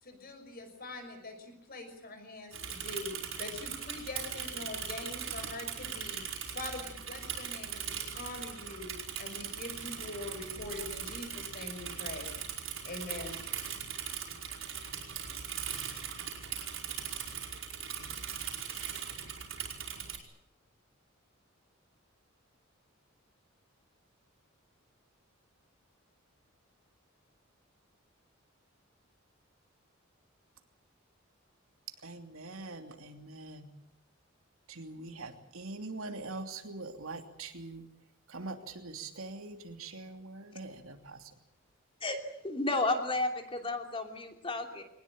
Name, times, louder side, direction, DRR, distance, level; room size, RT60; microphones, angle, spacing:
voice 1, 0.0-12.3 12.8-13.4, left 2 dB, 45° left, 6 dB, 6.1 m, -43 dB
Bicycle / Mechanisms, 2.5-20.2, right 8 dB, 70° right, 5.1 m, -40 dB
voice 2, 32.0-33.7 34.7-37.8 38.3-41.3, right 3 dB, 85° right, 5 dB, 3.0 m, -43 dB
voice 3, 42.4-44.8, left 2 dB, 25° left, 4 dB, 3.0 m, -32 dB
22.5 x 20.0 x 8.9 m, 0.78 s
head